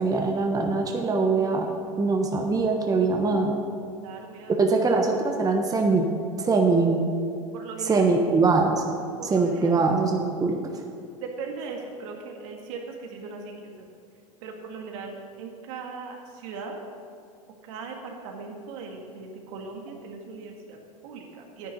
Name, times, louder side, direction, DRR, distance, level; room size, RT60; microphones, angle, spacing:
voice 1, 0.0-1.7 2.0-3.6 4.5-7.1 7.9-8.8 9.3-10.6, right 3 dB, 20° right, 2 dB, 1.1 m, -22 dB
voice 2, 4.0-4.8 7.5-8.1 9.2-9.8 11.2-13.9 14.4-16.8 17.6-21.7, right 4 dB, 65° right, 2 dB, 1.9 m, -39 dB
10.0 x 10.0 x 5.4 m, 2.3 s
hypercardioid pair, 95°, 18 cm